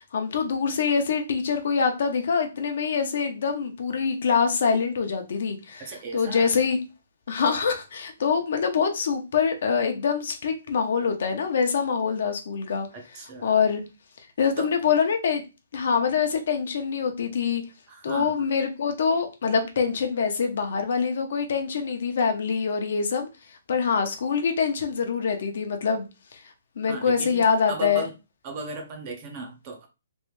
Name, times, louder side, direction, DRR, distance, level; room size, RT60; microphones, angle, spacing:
voice 1, 0.1-6.8 7.3-12.9 13.4-13.8 14.4-15.4 15.7-17.6 18.0-23.3 23.7-26.0 26.8-28.0, left 6 dB, 50° left, 0.7 m, -25 dB
voice 2, 5.8-6.5 12.9-13.6 14.6-14.7 17.9-18.5 26.9-28.1 28.4-29.9, right 2 dB, 25° right, 0.6 m, -36 dB
3.1 x 2.6 x 3.1 m
hypercardioid pair, 175°, 0 cm